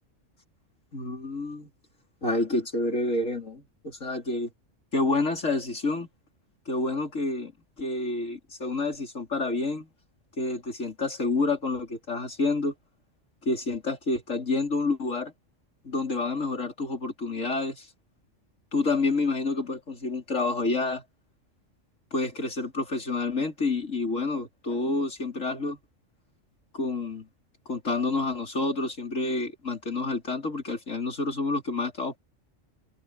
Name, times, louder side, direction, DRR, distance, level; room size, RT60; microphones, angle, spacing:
voice 1, 0.9-1.7 2.2-4.5 4.9-6.1 6.7-7.5 7.8-9.9 10.4-12.7 13.4-15.3 15.8-17.9 18.7-21.0 22.1-25.8 26.7-27.3 27.7-32.2, left 3 dB, 85° left, 4.2 m, -28 dB
omnidirectional pair, 1.3 m